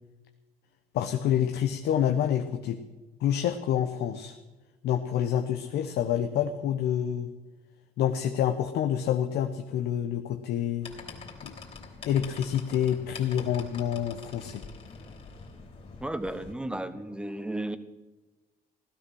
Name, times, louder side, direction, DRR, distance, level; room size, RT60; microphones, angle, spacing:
voice 1, 0.9-2.8 3.2-4.3 4.8-7.3 8.0-10.9 11.4-11.5 12.1-14.6, left 10 dB, 75° left, 6 dB, 1.0 m, -27 dB
sound 1, 10.8-16.5, left 4 dB, 35° left, 3.4 m, -45 dB
voice 2, 16.0-17.8, right 1 dB, 5° right, 11 dB, 1.1 m, -33 dB
16.0 x 12.5 x 6.4 m, 1.2 s
cardioid pair, 110°, 17 cm